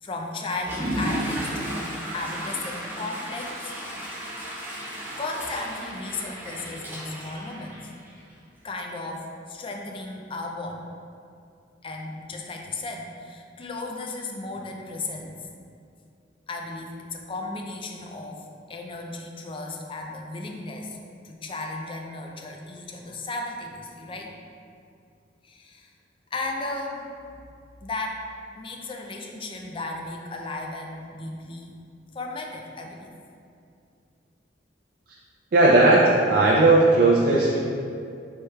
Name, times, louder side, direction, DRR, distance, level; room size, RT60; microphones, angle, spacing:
voice 1, 0.0-3.7 5.2-7.9 8.6-10.9 11.8-15.4 16.5-21.0 21.2-24.3 25.4-25.9 26.3-27.1 27.8-28.2 28.6-31.7 32.1-33.1, left 2 dB, 30° left, 1 dB, 0.4 m, -35 dB
Water / Toilet flush, 0.6-8.3, equal, 10° right, 0.7 m, -34 dB
voice 2, 35.5-37.6, right 2 dB, 55° right, -5 dB, 0.4 m, -17 dB
4.6 x 4.5 x 2.3 m, 2.5 s
head